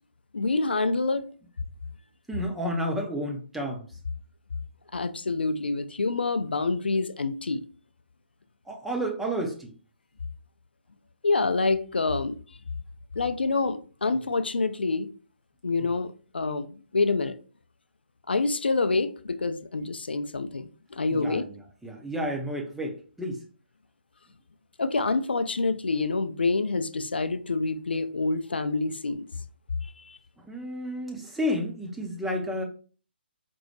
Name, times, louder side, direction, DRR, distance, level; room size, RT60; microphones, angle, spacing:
voice 1, 0.3-1.2 4.9-7.6 11.2-12.4 13.1-15.1 15.6-17.4 18.3-21.4 24.8-29.3 29.8-30.2, left 3 dB, 65° left, 0.4 m, -27 dB
voice 2, 2.3-3.9 8.7-9.7 21.1-23.4 30.4-32.6, equal, 5° right, 0.4 m, -31 dB
4.3 x 2.0 x 2.8 m
figure-of-eight pair, 135°, 6 cm